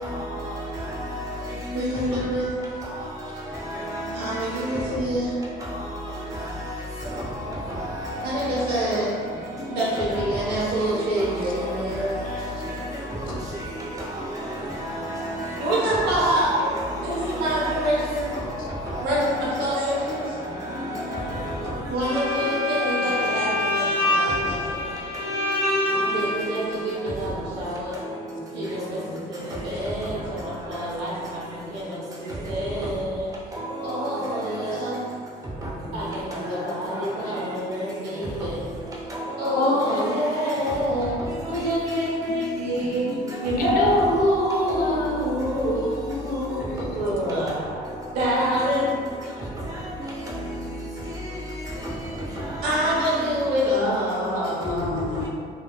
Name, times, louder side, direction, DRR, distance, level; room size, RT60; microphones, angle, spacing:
voice 1, 0.0-1.8 2.9-3.0 3.3-4.4 4.6-4.9 5.6-9.2 9.7-10.5 10.7-16.1 16.8-21.8 26.1-26.3 33.5-34.1 34.4-34.5 35.6-35.7 36.3-37.1 39.1-40.1 43.3-44.0 49.8-49.9 50.3-50.5 51.1-51.4 52.2-52.8 53.1-53.2, equal, 20° right, -6 dB, 0.7 m, -32 dB
voice 2, 1.7-2.5 4.1-5.3 8.2-9.1 9.6-12.3 15.6-16.7 17.0-18.3 19.0-20.2 21.9-24.7 26.0-28.0 28.5-33.3 33.8-35.0 35.9-38.6 39.4-41.1 41.5-43.1 43.4-45.8 46.3-46.4 46.9-47.8 48.1-48.9 52.6-55.0, equal, 75° right, -7 dB, 1.0 m, -26 dB
Bowed string instrument, 22.0-26.7, left 1 dB, 70° left, 0.8 m, -25 dB
voice 3, 39.5-40.6 41.1-41.2 43.6-45.2 45.8-47.4 49.2-49.3 53.8-55.3, left 2 dB, 55° left, -1 dB, 0.5 m, -30 dB
3.2 x 2.1 x 2.2 m, 2.2 s
cardioid pair, 110°, 17 cm